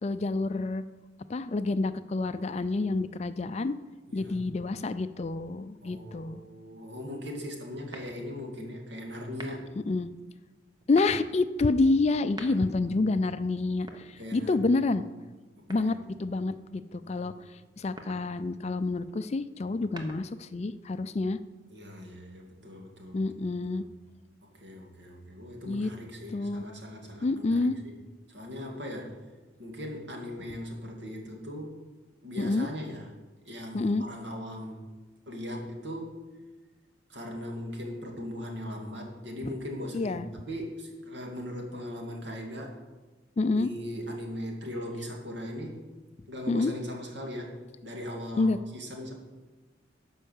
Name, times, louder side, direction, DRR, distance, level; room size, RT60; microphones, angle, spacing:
voice 1, 0.0-0.8 1.3-3.7 4.1-6.4 9.9-10.1 10.9-15.0 15.7-15.9 16.2-17.3 17.8-21.4 23.1-23.8 25.7-25.9 26.3-26.7 27.2-27.8 32.4-32.7 33.7-34.0 39.9-40.3 43.4-43.7 46.5-46.7 48.4-48.6, left 3 dB, 35° left, 12 dB, 0.4 m, -28 dB
voice 2, 4.1-4.4 5.8-9.7 12.5-13.1 14.2-15.0 15.7-16.1 17.0-17.4 21.7-23.2 23.7-23.8 24.6-28.0 28.3-29.2 29.6-31.8 32.2-33.1 33.4-34.8 35.3-36.3 37.1-42.8 43.5-45.8 46.3-47.6 47.8-49.1, left 1 dB, 70° right, 0 dB, 2.3 m, -39 dB
sound 1, 7.9-8.5 9.3-9.8 10.7-11.3 12.1-12.9 13.7-14.6 15.7-16.3 17.7-18.3 19.6-20.5, right 1 dB, 20° right, 0.9 m, -46 dB
12.0 x 5.5 x 7.3 m, 1.2 s
head